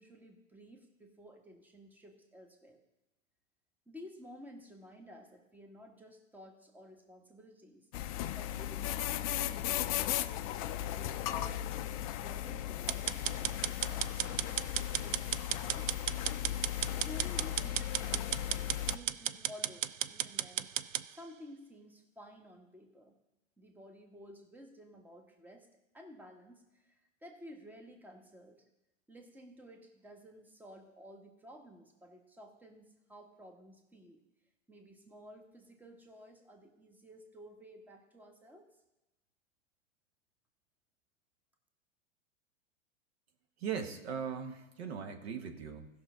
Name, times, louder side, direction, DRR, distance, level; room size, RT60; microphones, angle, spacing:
voice 1, 0.0-2.8 3.9-7.9 8.4-10.1 10.9-16.2 16.9-20.7 21.1-23.1 23.6-25.7 25.9-28.6 29.1-34.2 34.7-38.7, equal, 5° right, 3 dB, 1.3 m, -53 dB
sound 1, 7.9-19.0, left 12 dB, 30° left, 0.4 m, -36 dB
sound 2, 12.9-21.0, right 10 dB, 75° right, 0.5 m, -35 dB
voice 2, 43.6-45.9, right 7 dB, 55° right, 5 dB, 1.4 m, -39 dB
18.0 x 6.2 x 3.7 m, 0.98 s
figure-of-eight pair, 95°, 38 cm